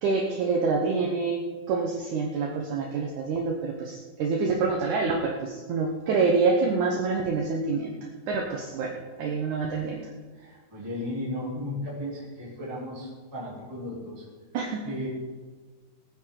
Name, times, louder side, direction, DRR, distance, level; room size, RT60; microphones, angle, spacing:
voice 1, 0.0-1.4 1.7-7.9 8.3-8.9 9.2-10.0 14.5-14.8, right 4 dB, 65° right, 0 dB, 2.2 m, -26 dB
voice 2, 10.4-14.2 14.8-15.1, left 1 dB, 5° right, -8 dB, 3.0 m, -35 dB
19.5 x 9.3 x 3.9 m, 1.4 s
omnidirectional pair, 4.1 m